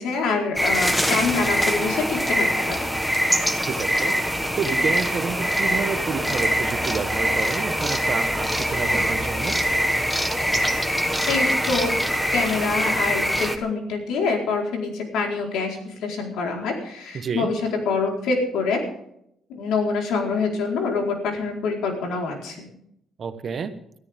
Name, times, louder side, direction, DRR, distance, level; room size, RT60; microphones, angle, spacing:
voice 1, 0.0-2.9 11.3-11.9 12.3-18.8 19.5-22.7, left 4 dB, 85° left, 1 dB, 4.5 m, -25 dB
sound 1, 0.6-13.6, equal, 5° left, 1.3 m, -23 dB
voice 2, 3.7-4.1 4.6-9.5 17.1-17.5 23.2-23.7, right 6 dB, 40° right, 9 dB, 1.3 m, -29 dB
20.5 x 13.5 x 3.7 m, 0.74 s
cardioid pair, 160°, 0 cm